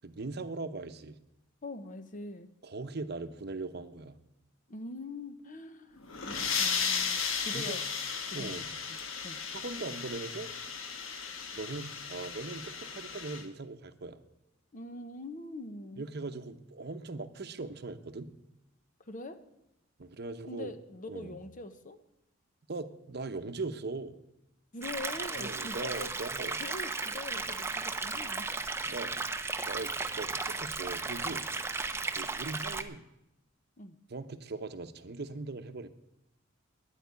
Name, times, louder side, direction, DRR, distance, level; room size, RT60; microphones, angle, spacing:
voice 1, 0.0-1.2 2.6-4.2 7.5-7.8 8.3-8.7 9.5-10.5 11.5-14.2 16.0-18.3 20.0-20.7 21.1-21.4 22.7-24.1 25.4-26.6 28.8-29.3 29.6-31.5 32.1-33.1 34.1-35.9, right 3 dB, 55° right, 9 dB, 0.8 m, -40 dB
voice 2, 1.6-2.5 4.7-7.8 8.3-9.4 14.7-16.1 19.0-19.4 20.5-22.0 24.7-26.1 26.6-28.5 33.8-34.0, left 2 dB, 40° left, 10 dB, 0.9 m, -43 dB
sound 1, 6.0-13.4, left 6 dB, 80° left, 1.4 m, -35 dB
sound 2, 24.8-32.8, right 3 dB, 15° right, 0.7 m, -35 dB
10.0 x 8.3 x 9.6 m, 0.85 s
head